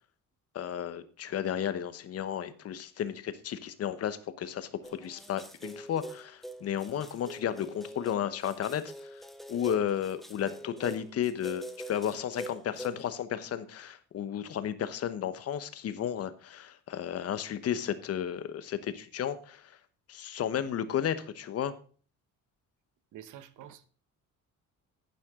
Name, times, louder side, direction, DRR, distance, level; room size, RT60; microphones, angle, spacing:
voice 1, 0.5-9.2 9.5-19.6 20.1-21.7, left 9 dB, 50° left, 1.1 m, -33 dB
sound 1, 4.8-13.0, right 1 dB, ahead, 0.9 m, -44 dB
voice 2, 23.1-23.8, right 10 dB, 70° right, 1.1 m, -48 dB
11.5 x 9.4 x 3.7 m
cardioid pair, 155°, 31 cm